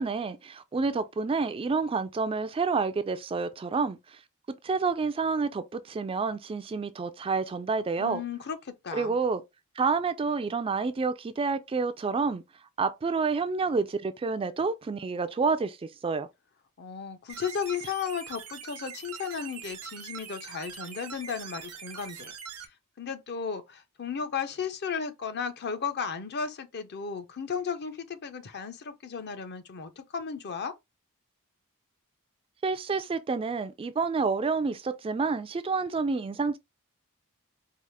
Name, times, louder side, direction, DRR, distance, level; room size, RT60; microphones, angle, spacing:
voice 1, 0.0-4.2 4.6-8.2 8.9-9.4 9.8-12.4 12.8-16.3 32.6-36.6, right 4 dB, 25° right, 0.3 m, -29 dB
voice 2, 8.0-9.2 16.8-22.3 23.0-30.8, left 6 dB, 50° left, 0.6 m, -35 dB
sound 1, 17.3-22.7, right 8 dB, 85° right, 0.9 m, -43 dB
4.8 x 2.4 x 3.3 m
head